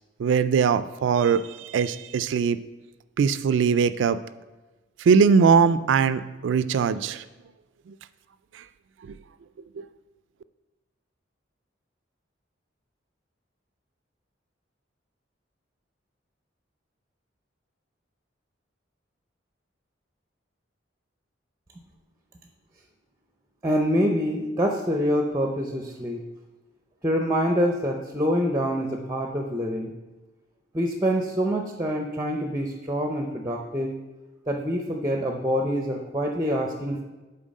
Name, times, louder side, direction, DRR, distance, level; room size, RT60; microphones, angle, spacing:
voice 1, 0.2-2.6 3.2-4.2 5.0-7.2 7.9-8.0 8.5-8.6 9.8-9.9, right 6 dB, 75° right, 14 dB, 0.3 m, -21 dB
voice 2, 23.6-26.2 27.0-29.9 30.7-34.0 34.5-37.0, equal, 15° right, 3 dB, 0.5 m, -26 dB
7.3 x 4.4 x 5.3 m, 1.2 s
head